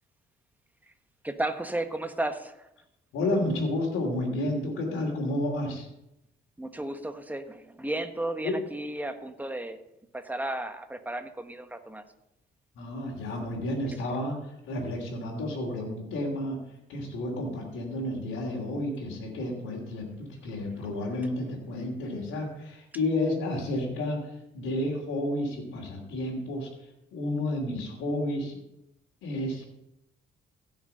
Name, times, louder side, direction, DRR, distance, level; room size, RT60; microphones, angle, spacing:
voice 1, 1.2-2.7 6.6-9.8 10.1-12.0, right 1 dB, 10° right, 7 dB, 1.3 m, -33 dB
voice 2, 3.1-5.9 8.4-8.6 12.7-16.6 16.9-28.6 29.2-29.6, left 1 dB, 85° left, -4 dB, 3.1 m, -31 dB
16.0 x 6.5 x 5.6 m, 0.85 s
cardioid pair, 90°, 20 cm